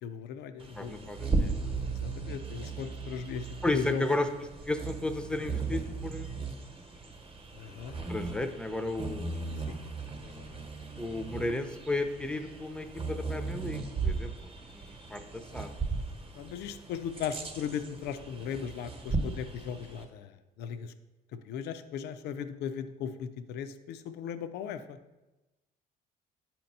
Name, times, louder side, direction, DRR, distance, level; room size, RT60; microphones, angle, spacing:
voice 1, 0.0-1.1 1.9-4.0 7.6-7.9 9.7-9.8 10.2-10.6 16.4-20.9 21.3-25.0, left 8 dB, 75° left, 10 dB, 0.5 m, -38 dB
Bird vocalization bird call bird song, 0.6-20.1, right 4 dB, 30° right, 1.0 m, -37 dB
voice 2, 0.8-1.7 3.6-4.3 4.6-6.4 8.1-9.3 11.0-14.3 14.7-15.7, left 2 dB, 5° left, 8 dB, 0.5 m, -33 dB
8.3 x 2.9 x 5.3 m, 1.1 s
cardioid pair, 110°, 17 cm